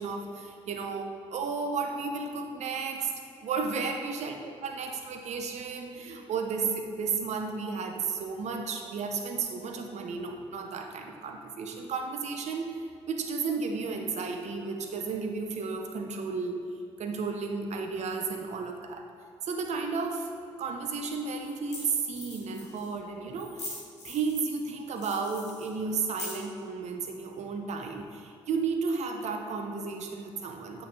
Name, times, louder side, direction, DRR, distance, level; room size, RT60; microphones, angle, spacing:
voice 1, 0.0-3.1 3.4-12.8 13.1-16.6 17.0-19.0 19.4-20.3 20.6-23.7 24.0-30.8, right 4 dB, 50° right, 4 dB, 0.7 m, -33 dB
sound 1, 20.6-20.7 21.5-21.6 21.7-21.8 22.1-22.9 23.4-24.6 25.0-26.6, left 2 dB, 90° left, 1.0 m, -42 dB
8.5 x 3.3 x 3.4 m, 2.5 s
figure-of-eight pair, 40°, 14 cm